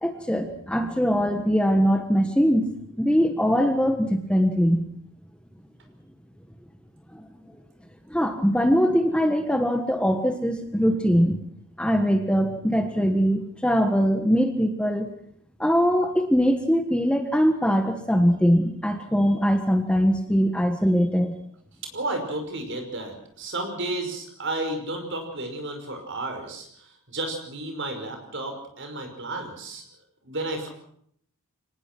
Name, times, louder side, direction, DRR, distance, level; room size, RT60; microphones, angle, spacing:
voice 1, 0.0-2.7 3.0-4.8 7.1-7.2 8.1-11.4 11.8-15.1 15.6-21.3, equal, 5° left, 6 dB, 1.3 m, -22 dB
voice 2, 21.9-29.8 30.2-30.7, right 2 dB, 55° right, 5 dB, 5.6 m, -32 dB
25.0 x 19.0 x 6.1 m, 0.67 s
head